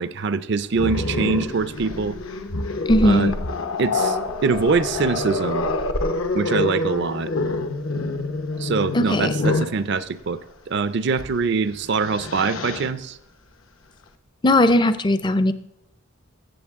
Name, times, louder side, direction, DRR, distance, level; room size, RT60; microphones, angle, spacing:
voice 1, 0.0-2.2 3.0-3.3 3.8-5.7 6.3-7.3 8.6-10.4 10.7-13.2, right 4 dB, 55° right, 14 dB, 0.5 m, -23 dB
Growling, 0.7-9.8 11.1-11.3 11.7-12.9, left 2 dB, 70° left, 0.9 m, -26 dB
voice 2, 2.9-3.3 8.9-9.3 14.4-15.5, left 1 dB, 20° left, 13 dB, 0.5 m, -18 dB
15.5 x 7.1 x 3.6 m, 0.80 s
head